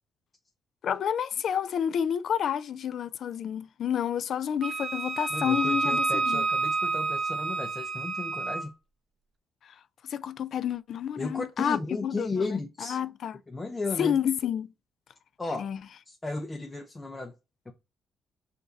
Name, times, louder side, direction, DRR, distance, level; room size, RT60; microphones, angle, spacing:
voice 1, 0.8-6.5 10.1-12.3 12.9-13.3 14.0-14.7 15.6-15.8, left 8 dB, 65° left, 0.3 m, -29 dB
Wind instrument woodwind instrument, 4.6-8.7, right 3 dB, 40° right, 0.6 m, -29 dB
voice 2, 5.3-8.7 11.2-13.0 13.5-14.2 15.4-15.7 16.1-17.3 17.7-17.8, left 3 dB, 20° left, 0.6 m, -34 dB
4.8 x 2.6 x 3.9 m
cardioid pair, 90°, 0 cm